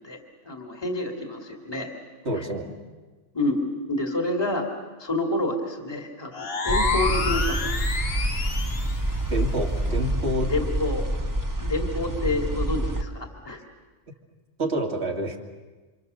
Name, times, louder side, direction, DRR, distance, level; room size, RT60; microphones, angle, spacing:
voice 1, 0.0-1.9 3.3-4.7 5.0-7.6 10.5-11.1 11.6-13.6, left 2 dB, 20° left, 2 dB, 2.5 m, -28 dB
voice 2, 2.2-2.8 9.3-10.5 14.6-15.4, right 1 dB, 60° right, 3 dB, 2.6 m, -28 dB
sound 1, 6.3-9.0, left 3 dB, 55° left, 1.6 m, -28 dB
sound 2, 6.7-13.0, right 1 dB, 15° right, 1.3 m, -27 dB
28.0 x 26.5 x 6.8 m, 1.3 s
omnidirectional pair, 1.3 m